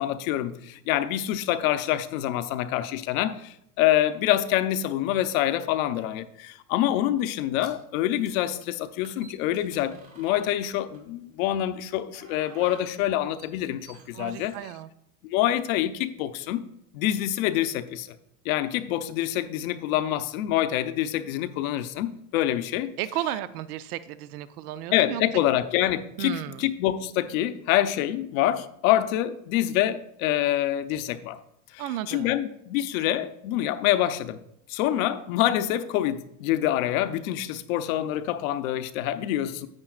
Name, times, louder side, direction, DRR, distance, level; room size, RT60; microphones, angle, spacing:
voice 1, 0.0-14.6 15.2-16.7 16.9-18.1 18.4-22.9 24.9-31.4 31.7-34.4 34.7-39.7, left 13 dB, 65° left, 0.7 m, -26 dB
sound 1, 7.6-11.2 11.9-14.6, right 4 dB, 35° right, 2.1 m, -52 dB
voice 2, 14.1-14.9 23.0-25.4 26.2-26.6 31.8-32.4, right 13 dB, 80° right, 0.6 m, -34 dB
10.5 x 8.4 x 2.4 m
supercardioid pair, 130°, 45 cm